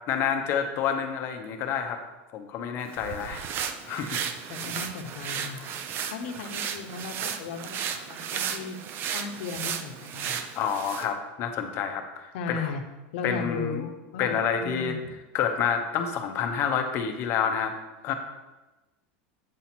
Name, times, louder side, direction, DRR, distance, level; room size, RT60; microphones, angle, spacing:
voice 1, 0.1-2.0 2.3-3.5 3.9-4.2 4.6-4.7 6.0-6.1 10.5-12.6 13.2-13.9 14.2-15.0 15.3-17.7 18.0-18.1, left 7 dB, 40° left, 6 dB, 0.7 m, -28 dB
sound 1, 2.9-11.1, right 8 dB, 35° right, 0.4 m, -34 dB
voice 2, 4.5-5.7 6.1-8.8 9.1-10.4 12.3-12.8 13.1-15.0, left 5 dB, 70° left, 5 dB, 0.8 m, -36 dB
8.1 x 2.8 x 5.9 m, 1.1 s
supercardioid pair, 150°, 6 cm